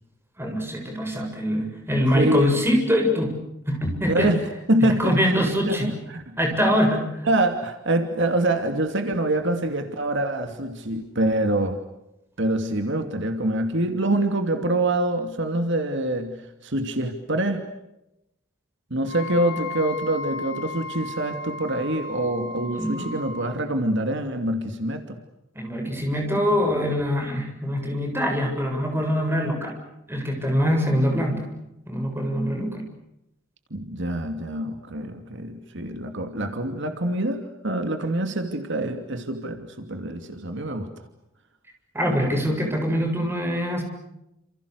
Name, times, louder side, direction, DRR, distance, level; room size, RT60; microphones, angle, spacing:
voice 1, 0.4-3.4 3.7-4.3 5.0-5.9 6.4-7.1 22.7-23.1 25.6-29.7 30.1-31.5 31.9-32.8 41.9-43.8, equal, 10° right, 3 dB, 7.5 m, -24 dB
voice 2, 2.1-2.5 4.1-5.2 5.7-6.4 7.2-11.8 12.4-17.6 18.9-25.1 33.7-40.9, right 1 dB, 65° right, 6 dB, 2.8 m, -25 dB
Wind instrument woodwind instrument, 19.1-23.6, left 2 dB, 55° left, 4.2 m, -35 dB
30.0 x 28.5 x 6.8 m, 0.89 s
head